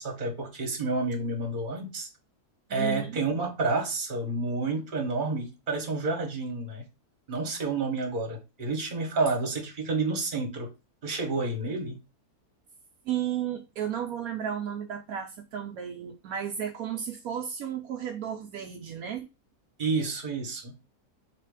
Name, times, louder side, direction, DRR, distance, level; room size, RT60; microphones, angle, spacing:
voice 1, 0.0-2.1 2.7-6.8 7.3-10.7 11.0-12.0 19.8-20.7, right 3 dB, 35° right, 1.3 m, -29 dB
voice 2, 2.7-3.2 13.0-19.3, right 9 dB, 75° right, 1.0 m, -33 dB
3.4 x 3.3 x 4.7 m
omnidirectional pair, 1.6 m